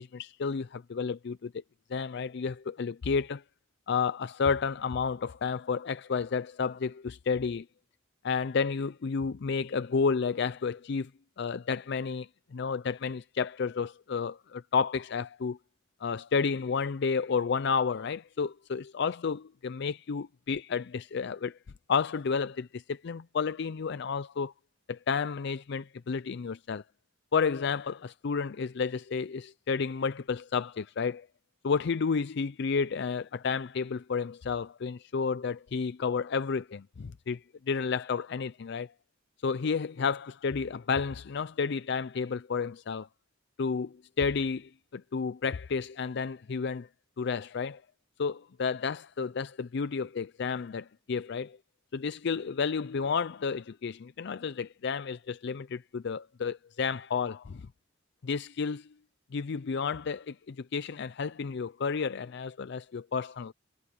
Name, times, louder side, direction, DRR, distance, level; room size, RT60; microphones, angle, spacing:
voice 1, 0.0-1.6 1.9-3.4 3.9-7.7 8.2-11.1 11.4-15.6 16.0-21.6 21.9-24.5 24.9-26.8 27.3-31.3 31.6-38.9 39.4-43.1 43.6-46.9 47.2-47.8 48.2-51.6 51.9-57.7 58.2-58.9 59.3-63.5, left 5 dB, 60° left, 0.5 m, -31 dB
head